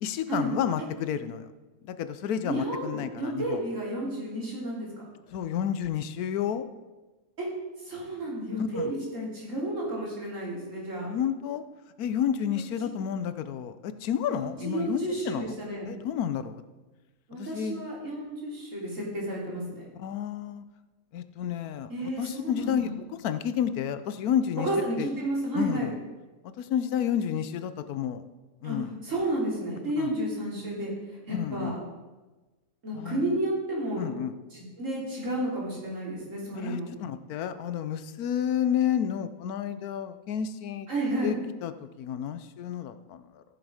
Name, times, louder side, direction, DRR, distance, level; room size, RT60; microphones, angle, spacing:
voice 1, 0.0-1.5 1.8-3.6 5.3-6.7 8.6-8.9 11.0-11.7 12.0-16.6 17.3-17.9 20.0-20.6 21.1-24.7 25.0-25.1 25.5-26.0 26.6-28.2 28.6-28.9 30.0-30.2 31.3-31.8 32.9-33.4 34.0-34.3 36.5-40.9 41.2-41.4 41.6-43.4, left 9 dB, 85° left, 11 dB, 1.2 m, -31 dB
voice 2, 2.4-5.1 7.4-7.5 7.9-11.1 14.6-15.9 17.3-19.9 21.9-22.9 24.6-25.9 28.6-28.8 29.0-30.9 31.3-31.8 32.8-34.1 34.5-36.9 40.9-41.3, right 1 dB, 60° right, -4 dB, 3.5 m, -31 dB
14.5 x 7.3 x 5.0 m, 1.2 s
omnidirectional pair, 1.5 m